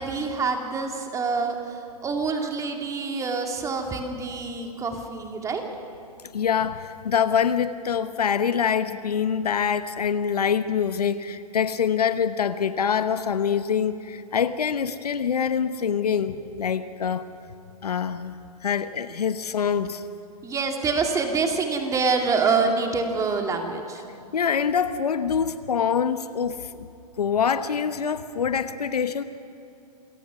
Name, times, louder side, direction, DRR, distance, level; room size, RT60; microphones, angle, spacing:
voice 1, 0.0-5.6 20.4-24.0, right 4 dB, 15° right, 3 dB, 2.4 m, -26 dB
voice 2, 6.3-17.3 17.8-18.3 18.6-20.0 24.3-26.9 27.2-29.2, left 7 dB, 75° left, 11 dB, 1.1 m, -25 dB
27.5 x 18.0 x 6.1 m, 2.7 s
hypercardioid pair, 115°, 20 cm